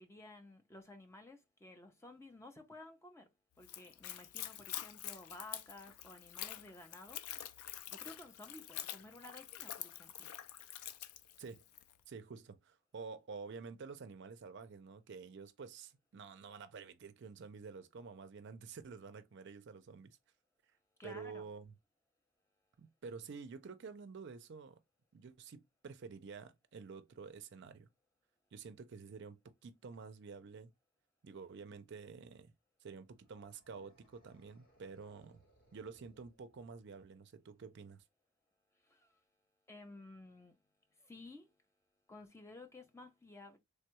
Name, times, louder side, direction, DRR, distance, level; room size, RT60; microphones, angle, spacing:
voice 1, 0.0-3.3 3.6-7.2 7.9-10.3 21.0-21.5 38.8-39.2 39.7-40.6 41.0-41.5 42.1-43.6, left 2 dB, 10° left, 0.4 m, -54 dB
Splash splatter / Trickle dribble, 3.6-11.9, left 11 dB, 80° left, 0.4 m, -47 dB
voice 2, 12.1-20.2 21.0-21.7 22.8-24.8 25.1-27.9 28.5-30.7 31.2-32.5 32.8-35.4 35.7-38.0, right 5 dB, 50° right, 0.4 m, -50 dB
sound 1, 33.1-37.0, right 1 dB, 40° left, 1.2 m, -70 dB
3.3 x 2.2 x 2.9 m
head